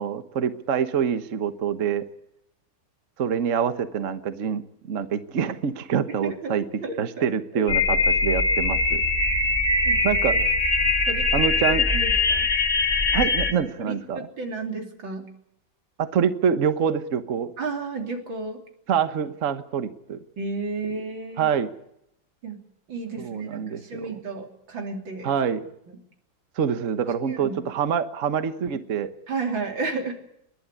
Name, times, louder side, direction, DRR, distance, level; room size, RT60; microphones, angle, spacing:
voice 1, 0.0-2.0 3.2-4.6 4.9-6.6 7.0-9.0 10.0-10.4 11.3-11.8 13.1-14.3 16.0-17.5 18.9-20.2 21.4-21.7 23.2-24.1 25.2-25.6 26.6-29.1, right 7 dB, 45° right, 11 dB, 1.3 m, -25 dB
voice 2, 6.2-7.3 7.5-8.0 9.9-10.0 10.3-10.4 11.1-11.3 11.7-12.5 13.8-15.3 17.6-18.6 20.4-21.5 22.4-22.6 22.9-25.3 25.9-26.0 27.3-27.6 28.6-28.8 29.3-30.1, right 3 dB, 90° right, 3 dB, 3.8 m, -32 dB
sound 1, 7.7-13.5, left 3 dB, 20° left, 2.1 m, -22 dB
29.0 x 11.5 x 9.8 m, 0.78 s
omnidirectional pair, 2.1 m